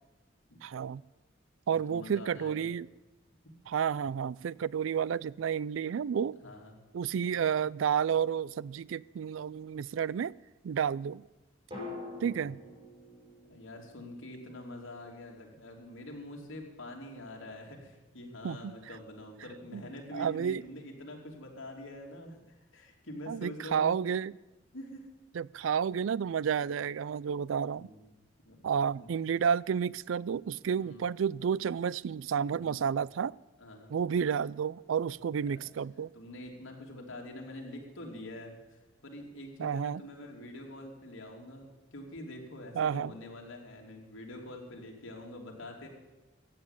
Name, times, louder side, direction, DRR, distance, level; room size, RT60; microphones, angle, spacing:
voice 1, 0.6-1.0 1.7-2.9 3.7-6.4 6.9-10.3 10.6-11.2 12.2-12.6 18.4-18.7 19.7-19.8 20.1-20.6 23.3-24.3 25.4-27.9 28.6-33.3 33.9-36.1 39.6-40.0 42.8-43.1, right 7 dB, 80° right, 23 dB, 0.3 m, -31 dB
voice 2, 1.7-2.7 6.3-6.7 12.1-12.6 13.4-23.9 24.7-25.1 27.3-27.4 27.7-28.1 28.4-28.6 28.9-29.1 30.7-31.0 32.5-32.8 33.6-33.9 35.3-35.7 36.1-45.9, left 1 dB, 85° left, 0 dB, 3.1 m, -45 dB
sound 1, 8.5-9.3 11.7-15.7 15.9-16.0, left 2 dB, 25° right, 6.0 m, -47 dB
15.0 x 8.5 x 8.3 m, 1.1 s
head